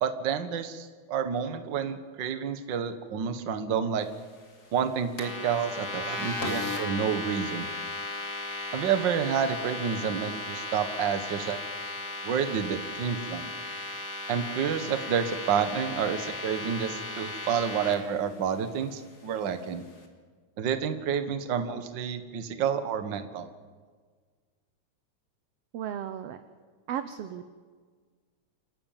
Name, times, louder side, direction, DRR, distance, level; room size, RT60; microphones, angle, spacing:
voice 1, 0.0-4.1 4.7-7.7 8.7-11.6 12.2-13.5 14.3-19.8 20.6-23.5, right 7 dB, 50° right, 9 dB, 1.5 m, -29 dB
sound 1, 5.2-17.9, left 2 dB, 35° left, 2.7 m, -36 dB
voice 2, 25.7-26.4 26.9-27.4, right 9 dB, 70° right, 10 dB, 1.6 m, -35 dB
28.5 x 12.5 x 8.9 m, 1.6 s
omnidirectional pair, 3.6 m